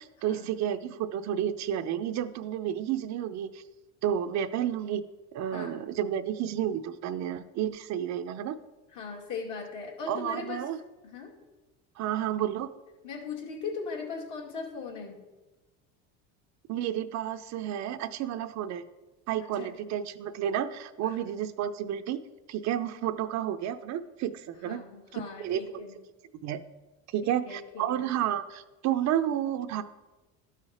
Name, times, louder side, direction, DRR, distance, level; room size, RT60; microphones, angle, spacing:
voice 1, 0.0-3.6 4.0-5.0 5.3-8.6 10.1-10.8 12.0-12.7 16.7-18.8 19.3-22.2 22.5-24.8 25.1-25.6 26.4-26.6 27.1-29.8, right 10 dB, 55° right, 10 dB, 0.6 m, -31 dB
voice 2, 5.5-5.9 8.9-10.6 11.0-11.3 13.0-15.2 19.5-19.8 21.1-21.2 24.6-26.0 27.2-28.1, left 5 dB, 60° left, 0 dB, 2.4 m, -39 dB
12.0 x 4.9 x 4.3 m, 1.1 s
supercardioid pair, 105°, 34 cm